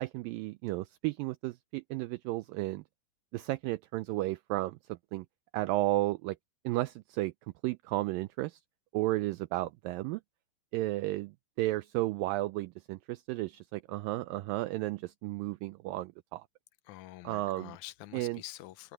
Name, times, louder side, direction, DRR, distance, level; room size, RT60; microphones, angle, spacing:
voice 1, 0.0-2.8 3.3-5.3 5.5-6.4 6.7-7.3 7.6-8.6 8.9-10.2 10.7-11.3 11.6-16.4 17.3-17.7 18.1-18.4, right 18 dB, 80° right, 2.2 m, -33 dB
voice 2, 16.8-18.9, left 16 dB, 85° left, 1.7 m, -47 dB
omnidirectional pair, 4.3 m